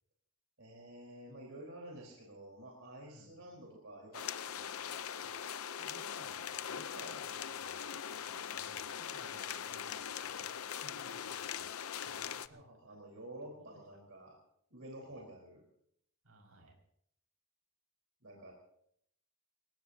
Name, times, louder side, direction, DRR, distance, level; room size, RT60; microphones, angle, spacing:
voice 1, 0.6-5.3 6.9-7.1 12.5-14.4 14.7-15.6 18.2-18.5, right 1 dB, 70° right, -1 dB, 4.2 m, -51 dB
voice 2, 3.0-3.3 5.8-10.5 10.8-12.6 12.9-13.0 13.4-13.8 15.0-15.2 16.2-16.8, right 1 dB, 85° right, 1 dB, 5.7 m, -60 dB
sound 1, 4.1-12.5, left 8 dB, 80° left, 0.7 m, -41 dB
28.5 x 17.0 x 2.8 m, 0.71 s
head